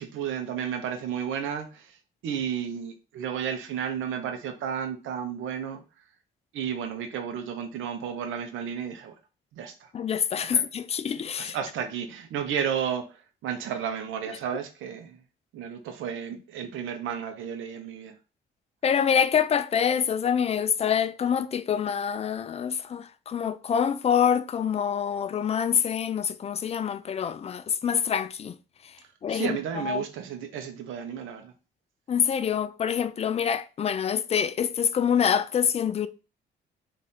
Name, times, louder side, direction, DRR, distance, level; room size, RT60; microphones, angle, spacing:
voice 1, 0.0-2.0 2.2-5.8 6.5-9.1 9.5-9.9 10.4-10.6 11.4-13.1 13.4-15.2 15.5-18.1 29.3-31.5, right 8 dB, 85° right, 0.7 m, -32 dB
voice 2, 9.9-11.6 18.8-28.6 29.2-30.0 32.1-36.1, left 8 dB, 30° left, 0.4 m, -26 dB
3.6 x 2.5 x 4.2 m
cardioid pair, 90°, 20 cm